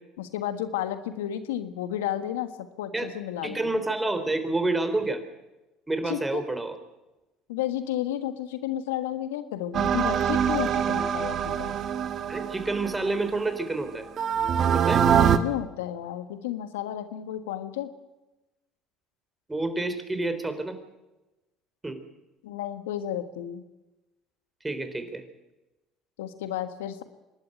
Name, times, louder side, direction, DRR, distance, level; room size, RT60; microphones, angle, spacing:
voice 1, 0.2-2.5 2.8-3.7 6.1-6.4 7.5-11.8 15.1-17.9 22.4-23.6 26.2-27.0, left 11 dB, 80° left, 10 dB, 1.4 m, -32 dB
voice 2, 3.4-5.2 5.9-6.8 12.3-14.1 14.7-15.1 19.5-20.8 21.8-22.0 24.6-25.2, right 2 dB, 15° right, 10 dB, 3.8 m, -28 dB
sound 1, 9.7-13.6 14.2-15.4, right 8 dB, 50° right, 1.6 m, -24 dB
26.5 x 12.0 x 9.0 m, 1.0 s
hypercardioid pair, 70°, 0 cm